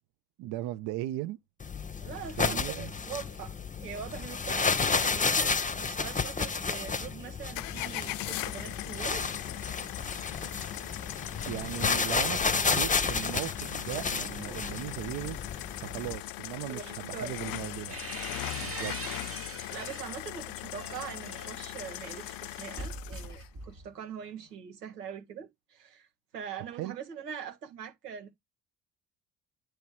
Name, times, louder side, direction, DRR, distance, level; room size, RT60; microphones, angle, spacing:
voice 1, 0.4-1.4 2.4-2.9 11.5-15.4 15.8-18.0 18.5-19.0 26.8-26.9, right 15 dB, 55° right, 0.6 m, -37 dB
sound 1, 1.6-16.2, left 5 dB, 15° left, 0.8 m, -31 dB
voice 2, 2.0-3.5 3.8-9.3 16.7-17.3 19.7-26.1 26.3-28.3, right 7 dB, 90° right, 1.1 m, -42 dB
sound 2, 7.5-23.5, left 17 dB, 50° left, 0.5 m, -40 dB
sound 3, 17.5-20.2 20.6-24.0, right 4 dB, 30° right, 1.1 m, -43 dB
9.3 x 3.1 x 4.7 m
hypercardioid pair, 55°, 46 cm